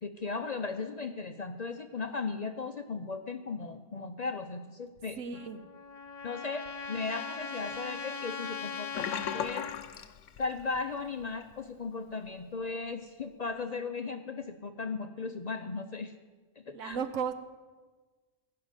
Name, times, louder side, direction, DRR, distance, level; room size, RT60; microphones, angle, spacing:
voice 1, 0.0-5.2 6.2-9.7 10.4-16.1 16.6-17.0, left 4 dB, 50° left, 7 dB, 0.5 m, -37 dB
voice 2, 5.1-5.6 16.7-17.3, right 7 dB, 90° right, 10 dB, 1.2 m, -34 dB
Trumpet, 5.3-9.9, left 5 dB, 35° left, 0.9 m, -40 dB
Sink (filling or washing), 8.9-10.9 11.2-11.5 11.9-12.0, left 8 dB, 80° left, 1.0 m, -37 dB
16.0 x 5.8 x 8.8 m, 1.3 s
omnidirectional pair, 1.3 m